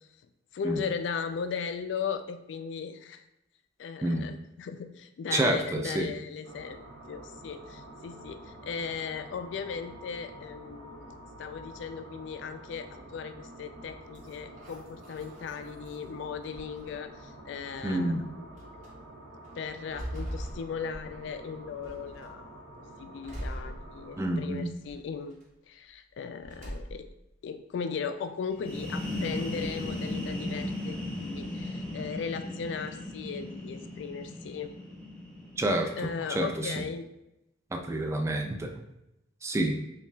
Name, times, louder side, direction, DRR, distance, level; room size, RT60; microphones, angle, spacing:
voice 1, 0.5-3.2 3.8-6.8 7.1-18.1 19.6-22.6 23.0-25.3 25.7-27.0 27.4-34.7 36.0-37.1, left 6 dB, 70° left, 9 dB, 0.3 m, -37 dB
voice 2, 5.3-6.1 17.8-18.3 24.2-24.7 35.6-36.8 37.7-38.7 39.4-39.8, right 1 dB, 15° right, 3 dB, 0.3 m, -29 dB
sound 1, 6.4-24.4, right 1 dB, 75° right, 0.7 m, -48 dB
sound 2, 14.1-16.0 16.5-17.3 18.0-18.1 18.6-18.9 19.4-21.4 21.8-22.4 23.2-24.4 24.8-25.4 26.4-27.2, equal, 45° right, 1.0 m, -41 dB
sound 3, 28.5-36.1, left 1 dB, 5° left, 0.7 m, -36 dB
5.7 x 2.4 x 2.2 m, 0.87 s
head